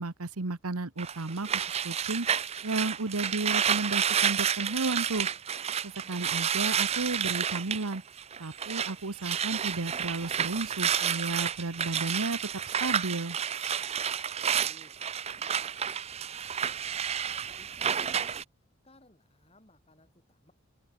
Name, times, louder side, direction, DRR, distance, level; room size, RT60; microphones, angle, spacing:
voice 1, 0.0-2.3 2.6-5.3 5.8-8.0 8.4-12.4 12.8-13.4, right 3 dB, 85° right, 1.3 m, -33 dB
sound 1, 1.0-8.9 9.2-18.4, right 8 dB, 30° right, 0.5 m, -30 dB
voice 2, 14.4-18.4 18.8-20.5, left 1 dB, 25° left, 7.4 m, -61 dB
head